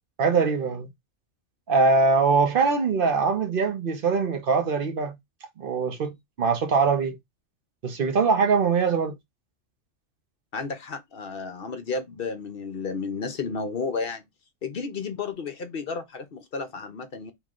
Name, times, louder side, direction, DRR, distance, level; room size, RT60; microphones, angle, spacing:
voice 1, 0.2-0.9 1.7-5.2 5.6-7.2 7.8-9.1, right 4 dB, 50° right, 0.9 m, -22 dB
voice 2, 10.5-14.2 14.6-17.3, left 4 dB, 50° left, 0.8 m, -32 dB
3.1 x 3.0 x 3.7 m
omnidirectional pair, 1.4 m